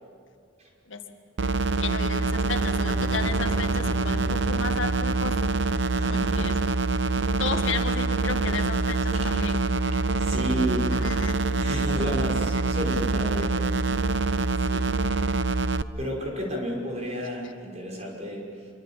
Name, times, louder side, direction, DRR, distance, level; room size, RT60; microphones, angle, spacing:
sound 1, 1.4-15.8, right 3 dB, 65° right, 0.6 m, -25 dB
voice 1, 1.8-5.4 6.1-6.6 7.4-9.7 10.9-11.3 14.6-14.9, left 4 dB, 75° left, 5 dB, 1.8 m, -34 dB
Bowed string instrument, 2.1-5.8, right 1 dB, 5° left, 2.4 m, -40 dB
voice 2, 5.9-6.6 9.3-9.4 10.2-13.8 15.9-18.7, equal, 35° right, -1 dB, 5.7 m, -32 dB
26.0 x 24.0 x 7.5 m, 2.1 s
head